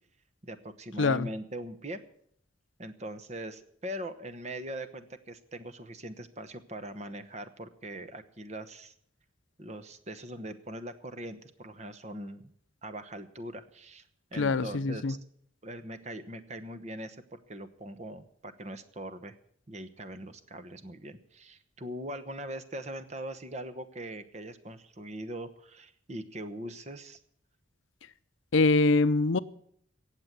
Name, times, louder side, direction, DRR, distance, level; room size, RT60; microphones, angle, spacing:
voice 1, 0.4-2.0 2.8-8.9 9.6-12.5 12.8-14.0 14.3-15.2 15.6-19.3 19.7-27.2, right 1 dB, 35° right, 1.0 m, -41 dB
voice 2, 14.4-15.1 28.5-29.4, left 3 dB, 80° left, 0.6 m, -24 dB
17.5 x 7.5 x 8.1 m
head